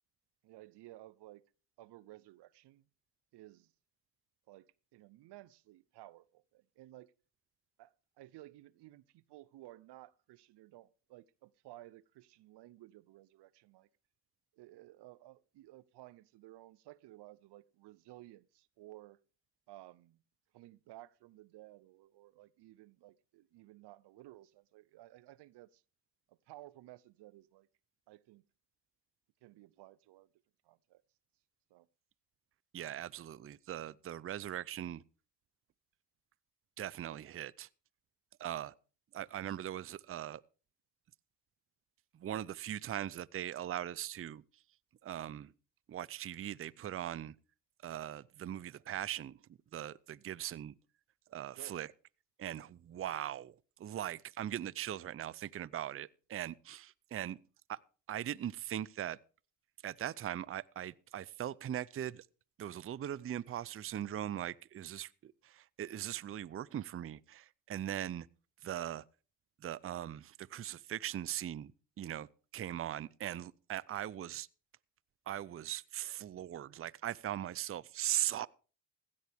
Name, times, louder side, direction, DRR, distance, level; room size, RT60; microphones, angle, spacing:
voice 1, 0.4-1.4 1.8-2.9 3.3-3.7 4.5-7.1 7.8-13.9 14.5-19.2 19.7-20.2 20.5-25.8 26.3-27.7 28.1-28.5 29.4-30.3 30.6-31.0 31.7-31.9 51.5-51.8, right 16 dB, 75° right, 0.7 m, -56 dB
voice 2, 32.7-35.0 36.8-37.7 38.4-38.7 39.1-40.4 42.1-44.6 45.0-45.5 45.9-47.4 47.8-50.7 51.3-51.9 52.4-57.4 57.7-57.8 58.1-59.2 59.8-62.3 62.6-68.3 68.6-69.0 69.6-71.7 72.0-72.3 72.5-74.5 75.3-78.5, right 11 dB, 35° right, 0.5 m, -40 dB
16.0 x 13.0 x 3.5 m
cardioid pair, 75°, 41 cm